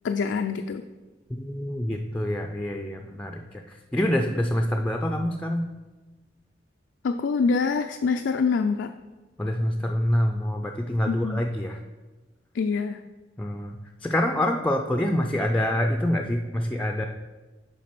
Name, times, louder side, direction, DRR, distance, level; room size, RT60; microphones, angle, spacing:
voice 1, 0.0-0.8 7.0-8.9 11.1-11.4 12.5-13.0, left 5 dB, 80° left, 6 dB, 0.4 m, -25 dB
voice 2, 1.4-5.7 9.4-11.8 13.4-13.8 14.0-17.1, left 1 dB, 10° left, 3 dB, 0.4 m, -26 dB
7.4 x 4.7 x 5.9 m, 1.2 s
head